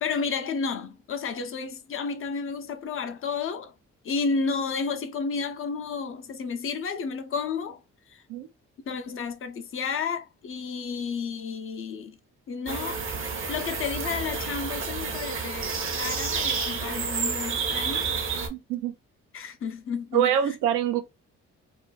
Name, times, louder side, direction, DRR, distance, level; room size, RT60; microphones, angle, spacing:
voice 1, 0.0-3.7 4.0-8.2 8.9-12.2 12.5-13.1 13.5-18.2 19.3-20.6, left 5 dB, 45° left, 0.5 m, -32 dB
sound 1, 12.7-18.5, right 5 dB, 45° right, 0.8 m, -30 dB
voice 2, 18.5-18.9 20.1-21.0, right 10 dB, 90° right, 0.6 m, -25 dB
2.5 x 2.4 x 2.3 m
cardioid pair, 90°, 30 cm